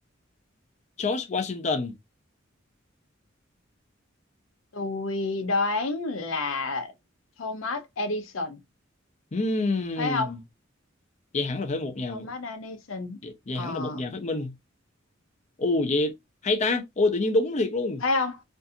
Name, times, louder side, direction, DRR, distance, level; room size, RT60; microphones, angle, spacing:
voice 1, 1.0-1.9 9.3-10.4 11.3-12.3 13.2-14.5 15.6-16.1 16.4-18.0, left 2 dB, 35° left, 0.5 m, -27 dB
voice 2, 4.7-6.9 7.4-8.6 10.0-10.3 12.1-13.2 13.5-14.1 18.0-18.4, left 3 dB, 85° left, 0.6 m, -29 dB
2.6 x 2.4 x 2.6 m
head